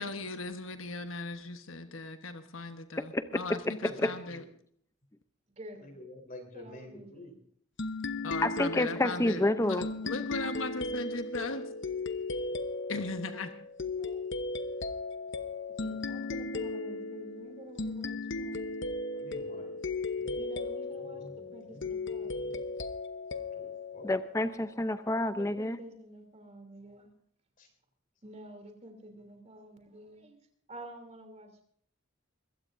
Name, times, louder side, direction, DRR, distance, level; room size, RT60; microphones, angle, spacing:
voice 1, 0.0-4.4 8.2-11.6 12.9-13.5, left 3 dB, 75° left, 7 dB, 1.3 m, -38 dB
voice 2, 3.0-4.1 8.4-9.9 24.0-25.8, left 1 dB, 15° left, 10 dB, 0.7 m, -29 dB
voice 3, 3.7-4.5 5.8-7.3 19.1-19.8 20.2-20.4 21.0-21.9 22.2-22.6 23.5-24.2 27.6-27.7, left 1 dB, 40° left, 3 dB, 4.0 m, -49 dB
voice 4, 5.6-6.0 6.5-7.3 9.0-10.4 13.1-13.6 14.0-14.3 15.7-18.8 20.4-22.6 25.4-27.1 28.2-30.4 30.7-31.6, right 1 dB, 35° right, 5 dB, 3.2 m, -49 dB
sound 1, 7.8-24.9, left 3 dB, 60° left, 1.0 m, -36 dB
22.5 x 16.0 x 2.7 m, 0.63 s
head